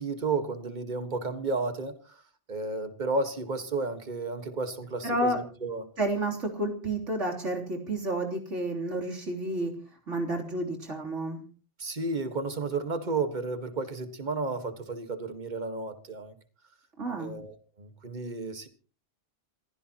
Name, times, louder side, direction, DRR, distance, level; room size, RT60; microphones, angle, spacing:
voice 1, 0.0-2.2 2.5-5.8 11.8-16.3 17.2-18.7, right 3 dB, 40° right, 8 dB, 1.7 m, -32 dB
voice 2, 5.0-5.4 6.0-9.7 10.1-11.4 17.0-17.3, right 1 dB, 85° right, 0 dB, 3.7 m, -30 dB
27.0 x 15.5 x 3.0 m, 0.39 s
omnidirectional pair, 1.2 m